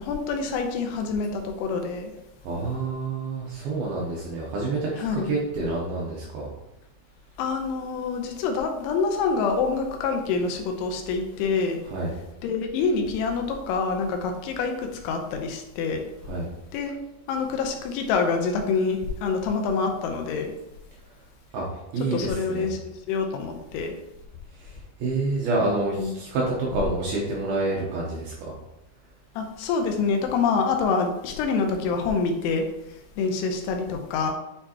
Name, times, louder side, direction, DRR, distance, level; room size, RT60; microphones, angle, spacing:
voice 1, 0.0-2.1 5.0-5.3 7.4-11.8 12.4-16.0 16.7-17.0 17.3-20.5 22.1-23.9 26.0-26.1 29.4-32.7 33.2-34.3, left 4 dB, 90° left, 4 dB, 3.1 m, -26 dB
voice 2, 2.4-6.5 11.9-12.1 16.3-16.5 21.5-21.7 21.9-22.7 24.5-28.5, right 3 dB, 75° right, -4 dB, 2.3 m, -28 dB
8.9 x 4.5 x 2.9 m, 0.90 s
omnidirectional pair, 5.5 m